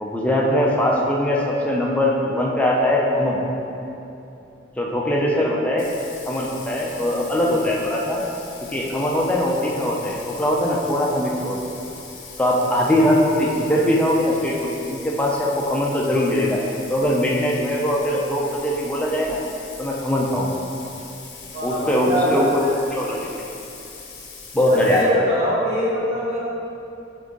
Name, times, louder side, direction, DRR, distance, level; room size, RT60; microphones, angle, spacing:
voice 1, 0.0-3.4 4.8-5.9 6.3-8.2 8.7-11.6 12.4-16.6 16.9-19.4 19.8-20.6 21.6-23.3 24.5-25.0, left 1 dB, 5° left, -3 dB, 0.4 m, -21 dB
Bathtub (filling or washing), 5.8-25.0, left 4 dB, 85° left, 0.6 m, -41 dB
voice 2, 21.5-22.8 24.7-26.4, equal, 35° right, -7 dB, 0.9 m, -23 dB
3.6 x 3.6 x 3.8 m, 2.8 s
head